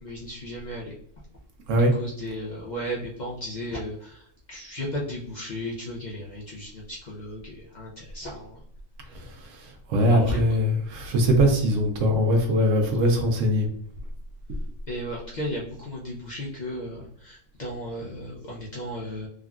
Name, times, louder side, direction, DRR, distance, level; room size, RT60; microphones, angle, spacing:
voice 1, 0.0-0.9 2.0-8.6 10.1-10.4 14.9-19.3, equal, 50° left, -4 dB, 0.5 m, -35 dB
voice 2, 9.1-13.7, equal, 80° right, 3 dB, 1.0 m, -22 dB
3.6 x 2.2 x 2.3 m, 0.68 s
omnidirectional pair, 1.3 m